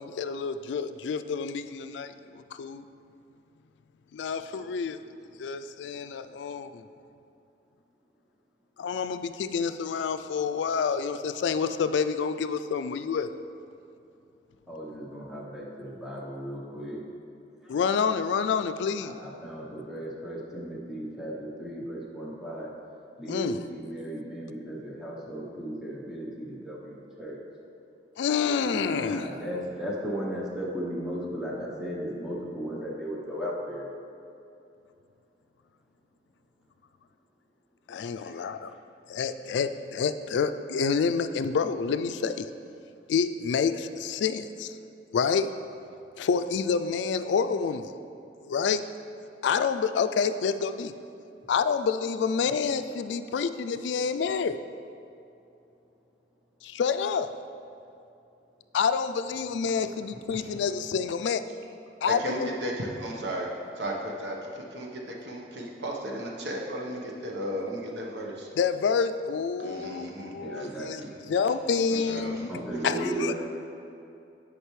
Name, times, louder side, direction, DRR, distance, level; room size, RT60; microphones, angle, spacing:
voice 1, 0.0-2.9 4.1-5.0 5.4-6.9 8.8-13.3 17.7-19.2 23.3-23.6 28.2-29.3 37.9-38.7 39.1-42.5 43.1-44.8 45.1-45.5 46.2-47.9 48.4-48.8 49.4-50.9 51.5-54.6 56.6-57.3 58.7-61.4 62.0-62.5 68.6-72.5 72.8-73.3, left 6 dB, 90° left, 11 dB, 0.3 m, -28 dB
voice 2, 14.7-17.0 17.6-17.8 19.0-22.7 23.2-27.4 28.9-33.9 38.2-38.4 70.3-71.2 72.5-73.3, right 1 dB, 5° right, -5 dB, 0.8 m, -36 dB
voice 3, 62.1-63.5 63.8-68.5 69.6-70.7 71.0-71.1 71.9-72.5, right 1 dB, 80° right, -1 dB, 1.1 m, -35 dB
9.8 x 5.1 x 3.2 m, 2.7 s
head